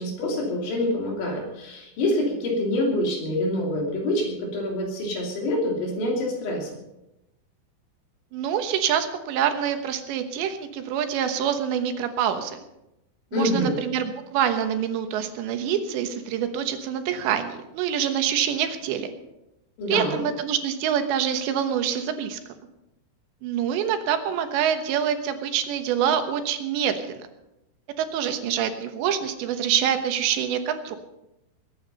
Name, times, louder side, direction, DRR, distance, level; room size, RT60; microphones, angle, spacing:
voice 1, 0.0-6.7 13.3-13.8 19.8-20.2, left 1 dB, 90° left, 0 dB, 5.4 m, -26 dB
voice 2, 8.3-12.6 13.3-19.1 19.9-22.4 23.4-27.2 28.0-31.0, right 9 dB, 80° right, 8 dB, 3.4 m, -26 dB
21.5 x 9.5 x 5.5 m, 0.91 s
omnidirectional pair, 5.1 m